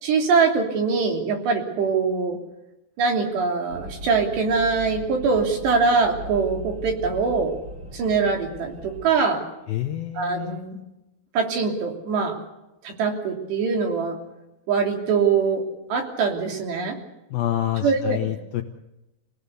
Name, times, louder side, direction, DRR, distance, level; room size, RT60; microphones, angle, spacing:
voice 1, 0.0-2.4 3.0-7.5 7.9-9.4 10.2-10.8 11.3-12.4 12.8-14.2 14.7-15.6 15.9-17.0 17.8-18.2, right 5 dB, 70° right, 3 dB, 5.2 m, -23 dB
sound 1, 3.7-9.1, equal, 25° right, 4.3 m, -39 dB
voice 2, 9.7-10.6 17.3-18.6, left 12 dB, 75° left, 6 dB, 2.2 m, -27 dB
27.5 x 18.0 x 6.9 m, 0.97 s
omnidirectional pair, 5.3 m